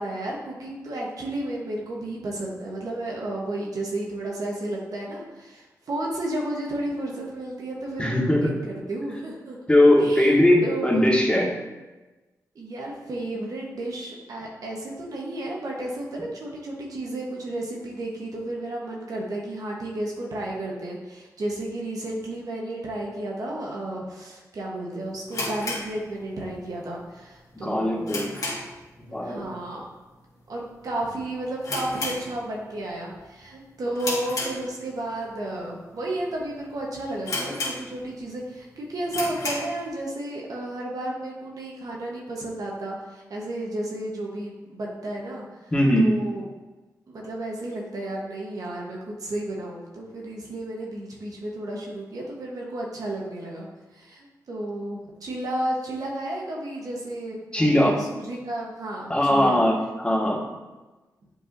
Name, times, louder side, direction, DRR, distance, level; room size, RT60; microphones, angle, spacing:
voice 1, 0.0-9.6 10.0-10.3 10.6-11.0 12.5-28.2 29.2-29.9 30.5-45.7 46.0-46.4 47.1-53.7 53.9-59.6, right 1 dB, 65° right, -2 dB, 1.2 m, -32 dB
voice 2, 8.0-8.5 9.7-11.5 27.6-28.3 29.1-29.5 45.7-46.1 57.5-58.0 59.1-60.4, left 1 dB, 15° left, -3 dB, 1.8 m, -20 dB
sound 1, 25.3-26.6 26.9-27.0 27.5-28.9 29.2-29.5 29.8-29.9 30.5-30.8 31.1-31.2 31.6-32.8 33.1-33.4 34.0-35.1 35.7-35.8 36.3-36.4 36.7-36.8 37.2-38.2 38.6-38.7 39.0-39.8, left 2 dB, 60° left, 1.9 m, -32 dB
7.9 x 4.6 x 2.7 m, 1.2 s
cardioid pair, 65°, 7 cm